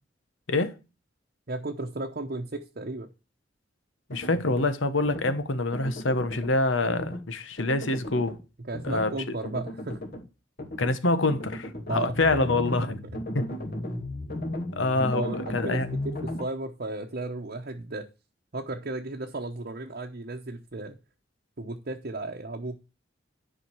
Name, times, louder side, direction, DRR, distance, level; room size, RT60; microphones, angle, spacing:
voice 1, 1.5-3.1 8.6-10.0 11.9-12.5 15.1-18.1 18.5-20.9 21.6-22.8, right 2 dB, 50° right, 0.9 m, -34 dB
voice 2, 4.1-8.4 8.8-9.1 10.8-13.0 13.3-13.4 14.7-15.9, left 2 dB, 85° left, 1.2 m, -26 dB
sound 1, 4.1-4.7 5.0-5.4 5.7-6.5 6.9-7.2 7.6-8.4 8.7-9.1 9.4-10.2 10.6-10.9 11.3-16.4, left 1 dB, 55° left, 2.2 m, -35 dB
10.5 x 5.1 x 4.7 m
head